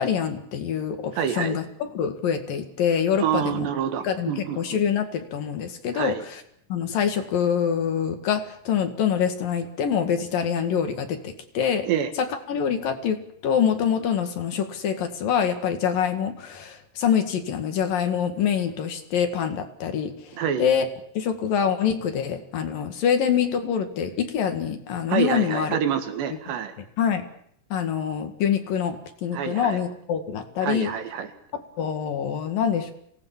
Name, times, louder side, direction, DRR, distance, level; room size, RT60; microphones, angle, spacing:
voice 1, 0.0-1.6 1.9-3.7 4.0-6.4 6.7-11.9 12.2-20.9 21.2-25.8 27.0-27.3 27.7-30.9 31.5-32.9, left 8 dB, 60° left, 6 dB, 3.4 m, -25 dB
voice 2, 1.2-1.6 3.2-4.8 5.9-6.2 11.9-12.1 20.4-20.7 25.1-26.7 29.3-29.8 30.6-31.3, right 8 dB, 85° right, 8 dB, 4.1 m, -27 dB
26.0 x 18.5 x 7.4 m, 0.68 s
omnidirectional pair, 4.8 m